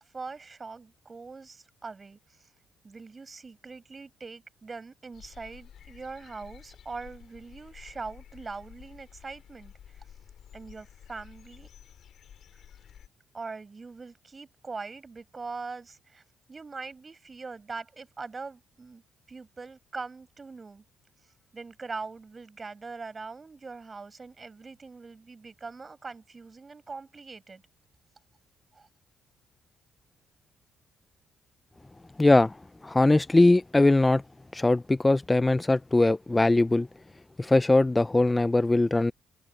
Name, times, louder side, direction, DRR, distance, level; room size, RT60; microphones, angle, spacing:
voice 1, 0.1-2.5 2.8-10.0 10.5-11.7 13.3-16.2 16.5-19.0 19.3-20.8 21.5-27.6 28.7-28.9, right 4 dB, 30° right, 7.5 m, -42 dB
sound 1, 5.1-13.1, left 9 dB, 65° left, 4.5 m, -51 dB
voice 2, 32.2-32.6 32.8-34.2 34.5-36.9 37.4-39.1, left 2 dB, 15° left, 0.4 m, -21 dB
cardioid pair, 90°, 0 cm